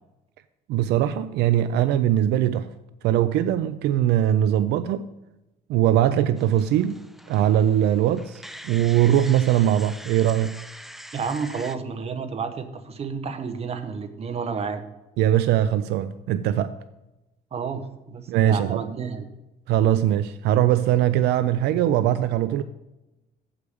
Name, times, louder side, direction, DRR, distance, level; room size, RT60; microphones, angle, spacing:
voice 1, 0.7-2.7 3.0-5.1 5.7-7.0 7.3-10.6 15.2-16.7 18.3-18.8 19.7-22.6, right 11 dB, 80° right, 0.4 m, -21 dB
sound 1, 6.4-11.8, equal, ahead, 0.4 m, -43 dB
voice 2, 11.1-14.8 17.5-19.3, right 5 dB, 35° right, 1.0 m, -31 dB
8.0 x 4.9 x 6.9 m
cardioid pair, 110°, 17 cm